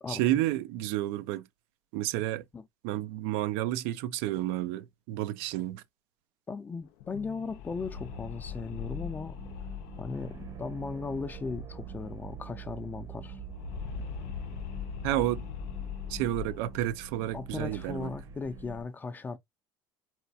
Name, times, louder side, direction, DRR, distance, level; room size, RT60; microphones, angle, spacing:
voice 1, 0.1-1.4 1.9-2.4 2.8-5.8 15.0-15.5 16.1-18.1, right 14 dB, 85° right, 0.4 m, -30 dB
voice 2, 6.5-9.4 10.0-13.4 17.3-19.4, left 4 dB, 20° left, 0.4 m, -37 dB
sound 1, 6.9-12.2 12.4-12.5 12.8-17.2, left 8 dB, 85° left, 0.5 m, -41 dB
sound 2, 7.9-18.8, right 6 dB, 45° right, 0.7 m, -45 dB
4.1 x 2.3 x 2.6 m
cardioid pair, 110°, 9 cm